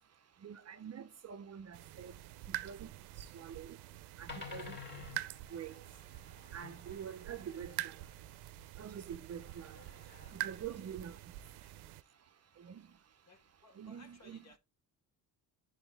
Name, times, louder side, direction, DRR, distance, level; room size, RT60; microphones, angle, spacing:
voice 1, 0.4-2.1 2.6-2.9 3.3-3.8 4.2-4.8 5.5-5.7 6.5-7.9 8.8-9.8 10.3-11.2 12.6-12.8 13.8-14.4, right 8 dB, 40° right, 0.6 m, -46 dB
sound 1, 1.6-1.7 3.2-3.4 3.9-4.0 4.3-8.7 9.4-10.5, left 5 dB, 25° left, 2.5 m, -52 dB
sound 2, 1.7-12.0, right 15 dB, 85° right, 0.6 m, -46 dB
voice 2, 9.7-10.9 11.6-12.0 13.3-14.6, left 2 dB, 45° left, 2.1 m, -63 dB
10.5 x 4.1 x 3.4 m
cardioid pair, 105°, 39 cm